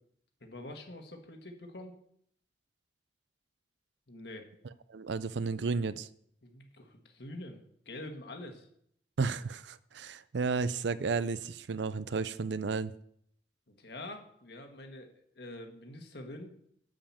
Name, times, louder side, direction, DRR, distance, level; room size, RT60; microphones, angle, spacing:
voice 1, 0.4-2.0 4.1-4.5 6.4-8.7 13.7-16.5, left 1 dB, 60° left, 4 dB, 1.6 m, -46 dB
voice 2, 4.9-6.1 9.2-12.9, right 4 dB, 70° right, 16 dB, 0.5 m, -32 dB
10.5 x 5.1 x 7.3 m, 0.68 s
head